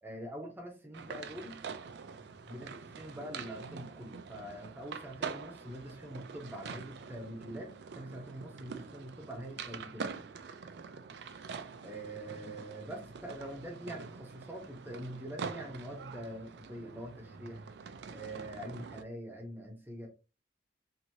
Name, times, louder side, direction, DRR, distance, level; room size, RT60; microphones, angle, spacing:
voice 1, 0.0-1.6 2.4-10.1 11.8-17.6 18.1-20.1, right 1 dB, 10° right, 0.8 m, -44 dB
sound 1, 0.9-19.0, right 5 dB, 70° right, 0.4 m, -45 dB
3.0 x 2.7 x 2.6 m
head